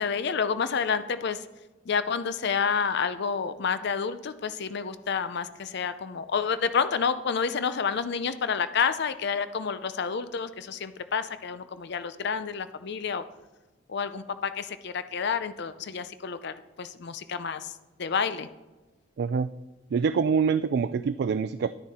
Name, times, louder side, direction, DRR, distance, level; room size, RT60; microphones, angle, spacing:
voice 1, 0.0-1.5 1.9-13.2 13.9-18.5, left 6 dB, 60° left, 12 dB, 0.5 m, -29 dB
voice 2, 19.2-19.5 19.9-21.7, right 6 dB, 55° right, 13 dB, 0.3 m, -25 dB
11.0 x 9.9 x 4.3 m, 1.1 s
head